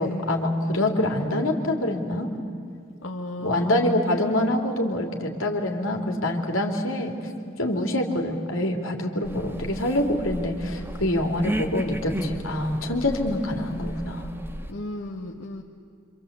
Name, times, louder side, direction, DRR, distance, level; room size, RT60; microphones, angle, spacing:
voice 1, 0.0-2.3 3.4-7.2 7.6-14.3, left 1 dB, 90° left, 2 dB, 3.3 m, -25 dB
voice 2, 3.0-4.0 14.7-15.6, left 1 dB, 70° left, 0 dB, 1.6 m, -34 dB
sound 1, 9.2-14.7, right 1 dB, 10° right, 1.5 m, -34 dB
27.5 x 26.0 x 8.3 m, 2.4 s
head